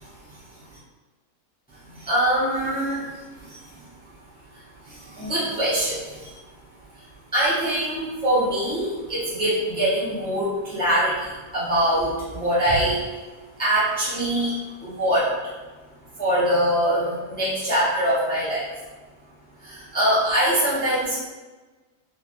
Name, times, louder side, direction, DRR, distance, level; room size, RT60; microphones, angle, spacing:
voice 1, 1.7-3.9 4.5-6.4 6.9-13.2 13.6-15.5 16.2-18.7 19.6-21.1, right 1 dB, 10° left, -10 dB, 0.6 m, -24 dB
3.1 x 2.5 x 2.5 m, 1.3 s
omnidirectional pair, 1.6 m